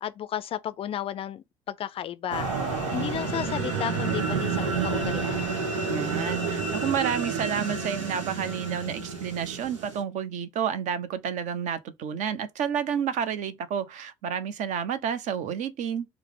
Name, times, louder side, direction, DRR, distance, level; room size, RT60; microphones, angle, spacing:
voice 1, 0.0-2.5 2.9-5.4, left 10 dB, 35° left, 0.4 m, -33 dB
sound 1, 2.3-10.0, right 4 dB, 75° right, 0.8 m, -29 dB
voice 2, 5.8-16.0, right 8 dB, 50° right, 0.6 m, -30 dB
4.5 x 2.0 x 3.6 m
figure-of-eight pair, 55°, 16 cm